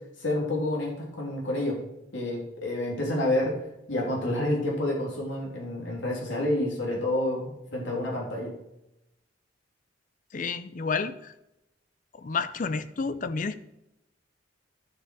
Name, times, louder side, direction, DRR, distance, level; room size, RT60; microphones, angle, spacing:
voice 1, 0.2-1.8 2.1-3.5 3.9-8.5, left 1 dB, 70° left, -3 dB, 3.1 m, -29 dB
voice 2, 10.3-11.3 12.2-13.6, left 4 dB, 40° left, 13 dB, 0.5 m, -30 dB
11.5 x 5.9 x 4.7 m, 0.88 s
head